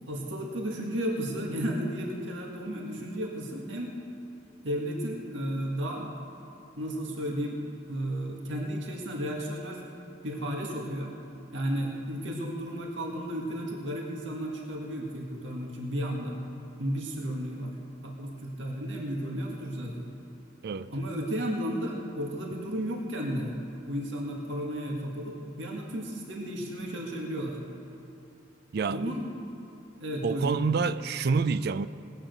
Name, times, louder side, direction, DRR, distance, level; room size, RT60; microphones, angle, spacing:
voice 1, 0.1-3.9 4.6-6.1 6.8-7.6 7.9-9.8 10.2-11.1 11.5-16.4 16.8-17.8 18.0-20.1 20.9-23.6 23.9-27.6 28.9-29.3 30.0-30.7, equal, 75° right, 1.9 m, -33 dB
voice 2, 28.7-29.0 30.2-31.9, right 5 dB, 55° right, 0.4 m, -27 dB
19.0 x 9.0 x 6.6 m
head